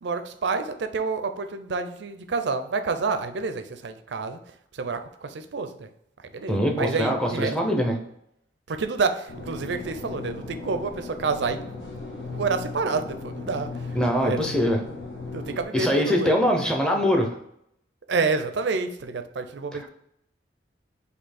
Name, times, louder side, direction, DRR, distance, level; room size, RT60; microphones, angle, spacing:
voice 1, 0.0-4.4 4.7-5.9 6.3-7.6 8.7-11.6 12.3-14.0 14.2-14.4 15.3-16.4 18.1-19.9, right 4 dB, 65° right, 9 dB, 0.5 m, -28 dB
voice 2, 6.5-8.0 13.9-14.8 15.7-17.3 19.7-19.9, equal, 5° left, 1 dB, 0.6 m, -23 dB
sound 1, 9.3-15.7, left 3 dB, 75° left, 1.4 m, -37 dB
4.4 x 2.7 x 4.2 m, 0.74 s
head